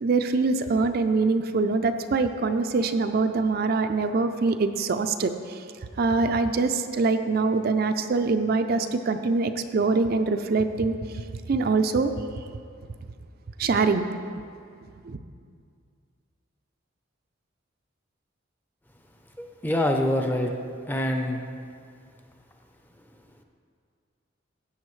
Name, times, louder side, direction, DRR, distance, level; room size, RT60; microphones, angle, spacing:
voice 1, 0.0-5.6 6.0-12.4 13.6-14.0 15.0-15.2, right 3 dB, 50° right, 7 dB, 0.4 m, -24 dB
voice 2, 19.4-20.5 20.9-21.4, left 1 dB, 10° left, 3 dB, 0.6 m, -25 dB
15.5 x 8.1 x 3.2 m, 2.2 s
head